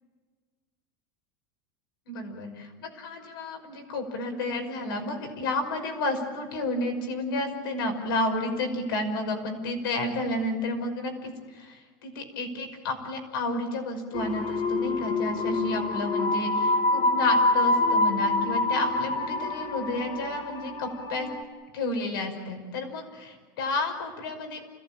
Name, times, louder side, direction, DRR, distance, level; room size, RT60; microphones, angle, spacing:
voice 1, 2.1-21.3 21.7-24.6, left 2 dB, 90° left, 4 dB, 5.7 m, -31 dB
sound 1, 14.1-21.4, left 2 dB, 40° left, 1.9 m, -26 dB
29.5 x 17.0 x 9.0 m, 1.5 s
supercardioid pair, 155°, 11 cm